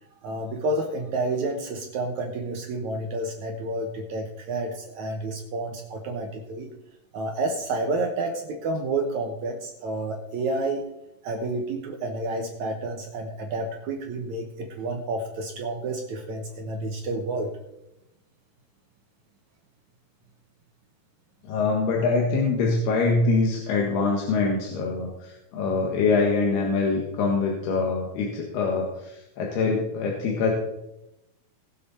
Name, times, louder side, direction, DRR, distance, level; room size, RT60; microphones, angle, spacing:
voice 1, 0.1-6.7 7.1-10.9 11.2-17.5, right 2 dB, 65° right, 3 dB, 1.9 m, -30 dB
voice 2, 21.4-30.5, left 4 dB, 85° left, -1 dB, 3.6 m, -24 dB
19.5 x 7.6 x 4.2 m, 0.89 s
omnidirectional pair, 4.4 m